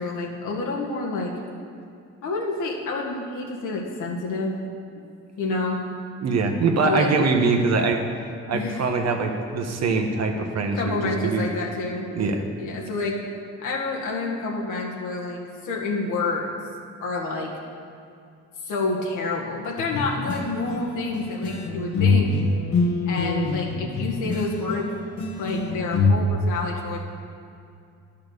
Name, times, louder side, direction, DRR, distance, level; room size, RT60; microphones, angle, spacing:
voice 1, 0.0-1.3 2.2-4.5 5.4-5.8 6.8-7.1 8.5-8.8 10.7-12.1 12.6-13.2 13.6-16.5 17.0-17.5 18.6-22.4 23.1-24.9 25.2-27.0, left 3 dB, 85° left, -2 dB, 1.8 m, -28 dB
voice 2, 6.2-8.0 8.5-11.0 11.2-11.4 12.1-12.4, right 4 dB, 60° right, 4 dB, 1.2 m, -23 dB
sound 1, 19.8-26.1, left 3 dB, 65° left, 1.2 m, -25 dB
11.0 x 5.7 x 6.7 m, 2.5 s
cardioid pair, 90°, 30 cm